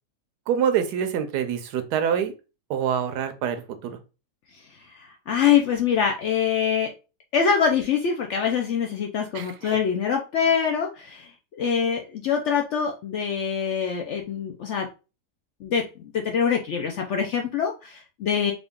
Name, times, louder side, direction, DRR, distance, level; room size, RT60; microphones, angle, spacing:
voice 1, 0.5-2.3 2.7-4.0 9.3-9.8, right 8 dB, 85° right, 9 dB, 1.2 m, -26 dB
voice 2, 5.3-6.9 7.3-11.3 11.6-14.9 15.6-15.8 16.2-18.5, left 7 dB, 65° left, 2 dB, 0.7 m, -24 dB
3.7 x 2.4 x 3.5 m, 0.31 s
omnidirectional pair, 1.7 m